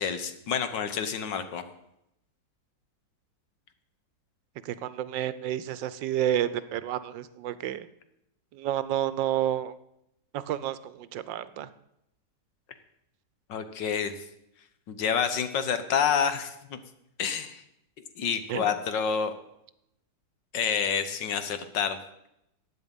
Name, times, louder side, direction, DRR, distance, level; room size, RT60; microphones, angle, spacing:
voice 1, 0.0-1.6 13.5-14.1 14.9-16.8 17.2-17.6 18.2-19.4 20.5-22.0, left 7 dB, 75° left, 10 dB, 1.8 m, -28 dB
voice 2, 4.6-7.9 8.5-9.7 10.3-11.7 18.5-18.7, right 11 dB, 85° right, 15 dB, 1.4 m, -30 dB
15.0 x 9.7 x 5.4 m, 0.80 s
omnidirectional pair, 2.0 m